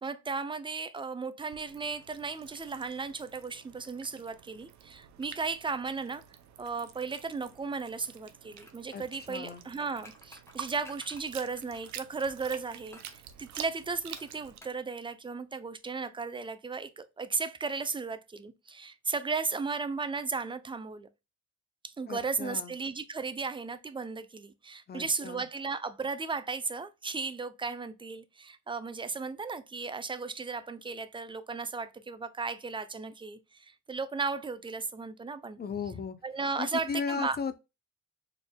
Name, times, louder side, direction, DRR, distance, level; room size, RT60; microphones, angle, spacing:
voice 1, 0.0-6.2 6.6-21.1 21.8-35.6 36.2-37.4, right 4 dB, 15° right, 0.4 m, -35 dB
sound 1, 1.5-14.6, right 10 dB, 70° right, 0.6 m, -49 dB
sound 2, 8.5-12.3 12.9-13.2 14.2-14.8 15.1-15.2, left 2 dB, 10° left, 1.1 m, -54 dB
voice 2, 9.3-9.6 22.1-22.7 24.9-25.4 35.6-36.2 36.6-37.5, left 5 dB, 35° left, 0.5 m, -36 dB
4.2 x 3.3 x 2.2 m
cardioid pair, 90°, 30 cm